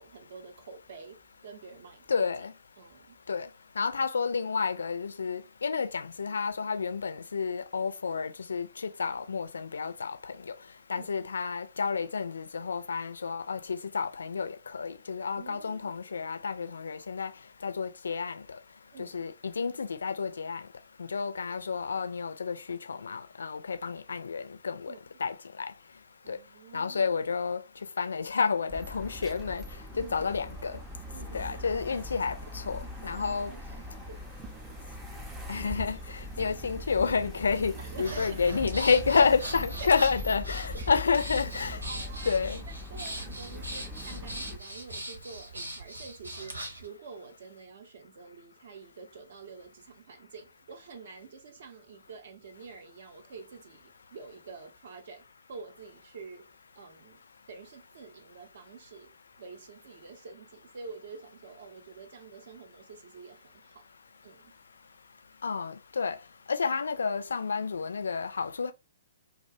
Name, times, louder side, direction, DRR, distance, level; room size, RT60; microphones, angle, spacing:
voice 1, 0.0-2.5 2.8-3.2 11.0-11.1 15.3-15.9 18.9-19.3 24.9-25.1 26.2-27.1 29.9-30.3 31.1-31.8 33.1-34.2 37.8-38.6 38.9-40.0 40.5-41.1 41.6-56.5 56.7-57.2 57.5-59.1 59.4-63.8 64.2-64.5, right 4 dB, 50° right, 0.6 m, -48 dB
voice 2, 2.1-2.5 3.3-3.5 3.8-10.1 10.5-10.6 10.9-17.3 17.6-18.4 19.0-20.6 21.1-24.9 25.2-25.3 26.3-26.4 26.7-27.6 28.0-29.6 30.0-30.8 31.3-33.5 35.5-36.0 36.4-41.8 42.3-42.6 65.4-66.2 66.5-68.7, left 5 dB, 65° left, 0.3 m, -30 dB
sound 1, 28.7-44.6, left 1 dB, 10° right, 0.4 m, -41 dB
Breathing, 38.0-46.9, right 1 dB, 80° right, 0.8 m, -41 dB
2.4 x 2.2 x 2.5 m
figure-of-eight pair, 120°, 0 cm